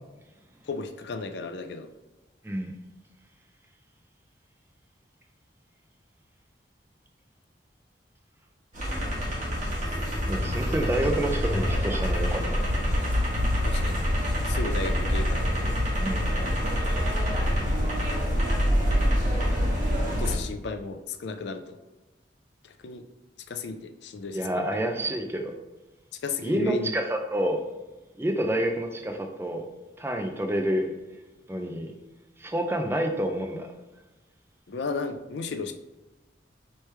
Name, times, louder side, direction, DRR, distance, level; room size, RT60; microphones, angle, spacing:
voice 1, 0.7-1.9 13.6-14.0 14.5-15.5 20.0-21.8 22.6-23.0 23.5-24.7 26.2-26.9 31.5-31.7 34.7-35.7, left 4 dB, 70° left, 7 dB, 0.4 m, -34 dB
sound 1, 8.7-20.4, equal, 40° right, 1.4 m, -26 dB
voice 2, 10.2-12.6 16.0-16.4 24.3-25.5 26.4-27.6 28.2-29.7 30.0-30.9 31.5-31.9 32.4-33.7, right 1 dB, 15° right, 4 dB, 0.4 m, -28 dB
4.5 x 3.2 x 3.3 m, 1.1 s
head